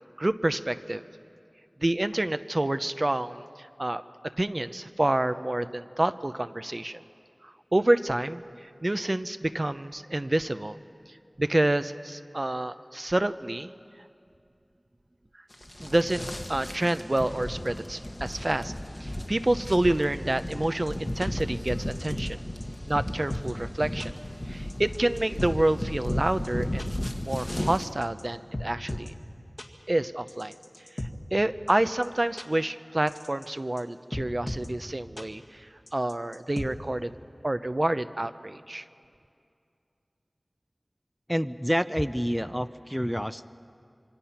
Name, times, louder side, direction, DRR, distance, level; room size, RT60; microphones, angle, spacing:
voice 1, 0.2-1.0 1.8-4.0 4.4-7.0 7.4-10.8 11.4-13.7 15.8-18.7 19.0-22.4 22.9-24.1 24.5-26.9 27.2-29.1 29.9-30.5 31.3-35.7 35.9-37.1 37.4-38.8, right 1 dB, 50° right, 11 dB, 0.7 m, -28 dB
sound 1, 15.5-27.9, left 1 dB, 30° left, 1.3 m, -34 dB
sound 2, 19.8-19.9 20.5-20.6 20.9-21.0 21.2-21.3 21.9-22.3 22.6-22.7 23.0-23.5 24.0-24.1 24.7-25.5 26.1-26.2 26.4-26.5 26.8-26.9 27.5-28.2 28.5-29.1 29.6-29.7 30.3-31.1 31.7-31.8 32.0-32.1 32.4-32.5 33.1-33.5 33.8-33.9 34.1-34.7 35.2-35.3 35.9-36.7, left 1 dB, 60° left, 2.0 m, -36 dB
voice 2, 41.3-43.5, equal, ahead, 12 dB, 0.6 m, -28 dB
26.5 x 23.5 x 5.9 m, 2.4 s
wide cardioid pair, 40°, 0 cm